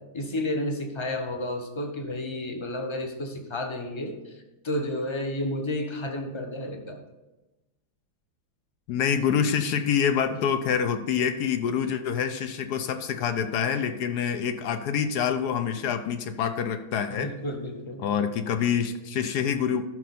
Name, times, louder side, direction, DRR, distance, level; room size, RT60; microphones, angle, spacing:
voice 1, 0.1-7.0 17.1-18.1, left 1 dB, 25° left, 4 dB, 0.7 m, -31 dB
voice 2, 8.9-17.3 18.0-19.8, left 7 dB, 70° left, 9 dB, 1.0 m, -26 dB
12.5 x 6.3 x 4.2 m, 1.0 s
omnidirectional pair, 2.2 m